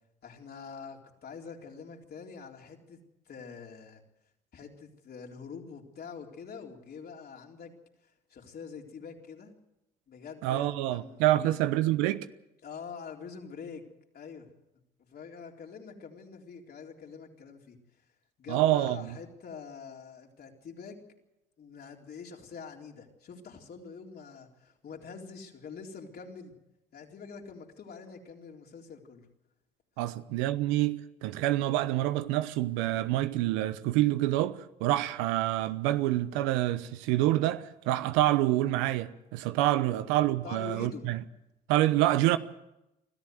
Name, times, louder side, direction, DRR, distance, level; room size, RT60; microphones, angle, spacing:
voice 1, 0.2-3.0 3.3-4.0 4.5-7.7 8.0-9.5 10.1-11.6 12.6-13.9 14.1-14.5 15.0-17.8 18.4-21.0 21.6-26.5 26.9-29.3 39.8-40.0 40.4-41.1, left 6 dB, 50° left, 3.8 m, -45 dB
voice 2, 10.4-12.3 18.5-19.0 30.0-41.2 41.7-42.4, right 15 dB, 80° right, 0.9 m, -27 dB
24.5 x 14.0 x 7.9 m
hypercardioid pair, 60°, 20 cm